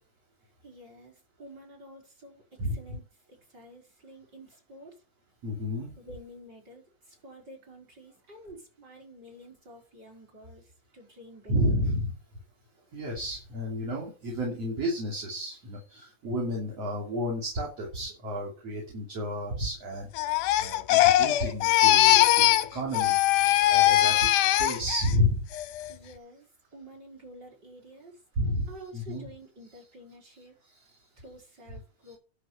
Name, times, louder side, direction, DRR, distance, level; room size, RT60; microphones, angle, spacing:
voice 1, 0.6-4.9 6.0-11.9 25.9-28.2 28.7-30.5 31.2-32.2, right 1 dB, 25° right, -1 dB, 6.3 m, -50 dB
voice 2, 5.4-5.9 11.5-12.1 12.9-23.2 23.7-24.2 24.6-25.4 28.4-28.7 28.9-29.2, equal, 45° right, -2 dB, 4.0 m, -31 dB
Crying sobbing, 20.2-22.7 22.9-25.1 25.5-25.9, left 14 dB, 75° left, 2.1 m, -21 dB
11.5 x 7.0 x 7.2 m, 0.36 s
omnidirectional pair, 4.1 m